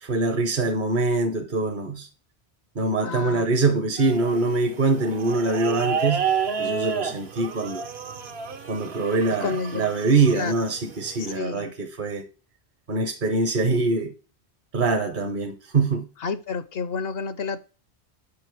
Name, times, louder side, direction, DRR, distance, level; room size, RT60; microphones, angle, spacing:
voice 1, 0.0-2.1 2.8-6.2 6.6-7.9 8.7-12.3 12.9-14.1 14.7-16.0, right 3 dB, 55° right, 1.0 m, -24 dB
voice 2, 3.0-3.5 9.3-9.9 10.3-10.5 11.2-11.7 16.2-17.6, left 5 dB, 70° left, 0.9 m, -30 dB
sound 1, 4.0-11.4, right 6 dB, 70° right, 1.2 m, -31 dB
6.9 x 5.3 x 4.6 m
omnidirectional pair, 1.1 m